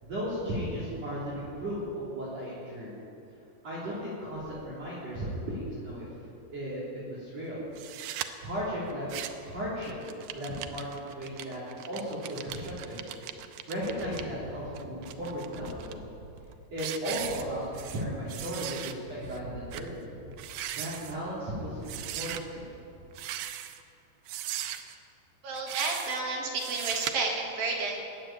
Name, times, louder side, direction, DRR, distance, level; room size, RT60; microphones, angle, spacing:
voice 1, 0.0-2.9 3.6-6.1 6.5-7.6 8.4-9.1 9.4-9.9 10.3-13.0 13.3-16.0 16.7-20.0 20.8-22.8, equal, 40° right, -8 dB, 4.1 m, -35 dB
sound 1, 7.8-8.3 8.9-9.5 9.8-14.2 14.8-15.9 16.4-16.5 16.8-18.0 18.3-18.9 19.3-19.4 19.7-19.9 20.3-21.2 21.8-22.4 23.1-23.8 24.3-24.9 25.5-26.2 26.6-27.1, right 12 dB, 85° right, 2.0 m, -38 dB
voice 2, 25.4-28.0, right 3 dB, 65° right, -1 dB, 3.4 m, -31 dB
20.5 x 7.7 x 8.9 m, 2.7 s
omnidirectional pair, 4.8 m